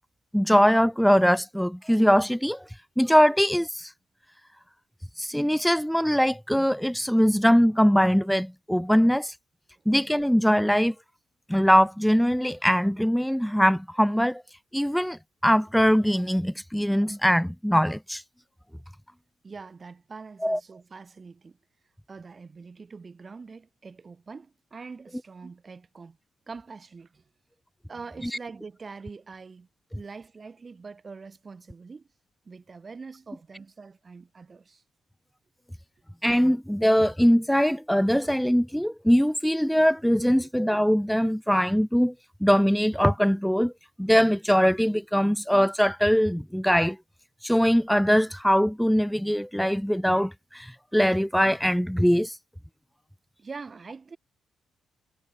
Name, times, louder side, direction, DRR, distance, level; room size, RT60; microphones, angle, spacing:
voice 1, 0.3-2.6 3.0-3.7 5.2-9.3 9.9-10.9 11.5-14.4 14.7-18.2 20.4-20.6 36.2-42.1 42.4-43.7 44.0-47.0 47.4-50.7 50.9-52.3, equal, ahead, 0.6 m, -22 dB
voice 2, 19.4-21.6 22.1-26.2 26.5-27.2 27.9-29.7 29.9-32.1 32.5-34.8 40.4-40.5 53.4-54.2, right 4 dB, 35° right, 5.9 m, -44 dB
cardioid pair, 75°, 0 cm